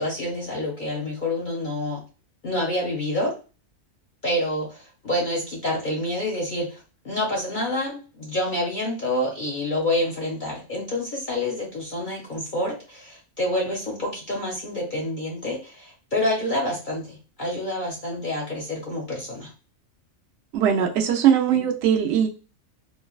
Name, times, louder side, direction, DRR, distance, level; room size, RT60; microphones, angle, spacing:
voice 1, 0.0-2.0 2.4-3.3 4.2-19.5 21.5-21.6, left 1 dB, 50° left, -2 dB, 0.7 m, -28 dB
voice 2, 20.5-22.3, right 9 dB, 65° right, 2 dB, 0.8 m, -20 dB
3.1 x 2.1 x 2.3 m, 0.34 s
omnidirectional pair, 1.3 m